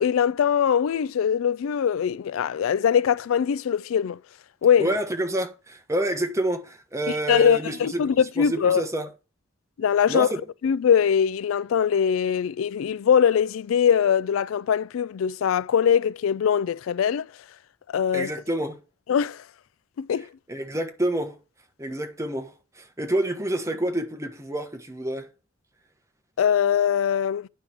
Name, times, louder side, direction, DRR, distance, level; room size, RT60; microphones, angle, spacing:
voice 1, 0.0-4.2 4.6-4.9 7.1-8.8 9.8-10.3 10.6-17.3 17.9-18.3 19.1-19.4 20.0-20.3 26.4-27.5, left 8 dB, 85° left, 0.3 m, -22 dB
voice 2, 4.8-9.1 10.1-10.4 18.1-18.8 20.5-21.4 21.8-25.3, right 1 dB, 15° right, 1.2 m, -28 dB
9.7 x 5.5 x 4.6 m
head